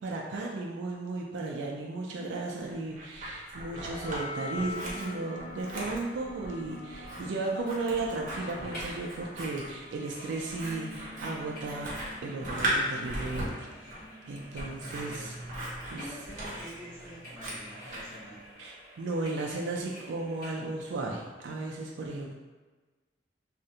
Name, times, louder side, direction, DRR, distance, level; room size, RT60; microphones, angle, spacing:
voice 1, 0.0-11.9 12.2-13.9 14.3-15.3 15.9-16.0 18.6-22.3, right 3 dB, 85° right, -1 dB, 0.3 m, -35 dB
Scissors, 2.7-4.2 4.5-18.2, right 1 dB, 45° right, 0.6 m, -38 dB
sound 1, 3.7-18.5, left 1 dB, 70° left, 1.3 m, -45 dB
sound 2, 8.7-9.0 9.3-20.6 21.1-21.2, equal, 50° left, 1.0 m, -49 dB
voice 2, 14.5-15.3 15.9-18.5, equal, 10° left, -13 dB, 1.1 m, -46 dB
2.4 x 2.1 x 2.7 m, 1.3 s
head